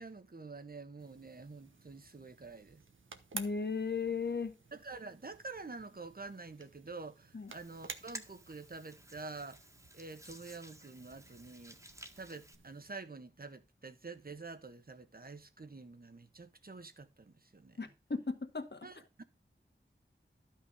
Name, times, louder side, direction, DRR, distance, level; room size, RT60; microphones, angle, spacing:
voice 1, 0.0-2.8 4.7-9.6 9.9-11.8 12.1-17.8 18.8-19.2, right 3 dB, 50° right, 1.3 m, -48 dB
sound 1, 1.0-13.0, right 4 dB, 90° right, 1.2 m, -53 dB
voice 2, 3.3-4.5 7.3-7.5 17.8-18.9, left 5 dB, 60° left, 1.6 m, -36 dB
Hands, 7.5-12.6, right 1 dB, 15° right, 1.8 m, -54 dB
12.0 x 5.8 x 5.0 m
wide cardioid pair, 50°, 20 cm